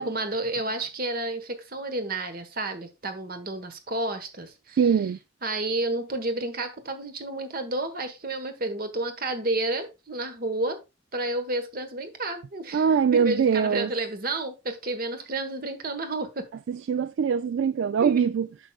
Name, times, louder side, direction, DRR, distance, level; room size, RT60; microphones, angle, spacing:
voice 1, 0.0-4.8 5.4-10.8 11.1-12.9 13.1-16.5 18.0-18.2, right 2 dB, 45° right, 1.3 m, -31 dB
voice 2, 4.8-5.2 12.7-13.9 16.7-18.5, right 6 dB, 65° right, 0.3 m, -23 dB
8.8 x 6.6 x 2.4 m
head